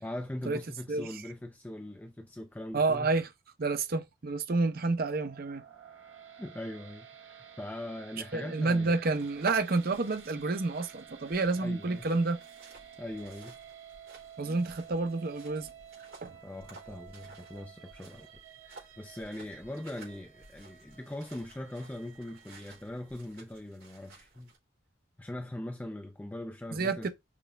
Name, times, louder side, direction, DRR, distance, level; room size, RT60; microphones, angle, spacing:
voice 1, 0.0-3.1 6.4-9.0 11.6-12.1 13.0-13.6 16.4-18.3 18.6-24.5 25.2-27.1, left 1 dB, 10° left, 0.3 m, -41 dB
voice 2, 2.7-3.3 3.6-5.6 8.3-12.4 14.4-15.7 16.2-16.4 26.7-27.1, right 3 dB, 45° right, 0.6 m, -29 dB
sound 1, 5.0-23.3, right 8 dB, 70° right, 0.9 m, -52 dB
sound 2, 9.1-24.6, right 3 dB, 90° right, 3.3 m, -52 dB
5.9 x 2.4 x 3.2 m
head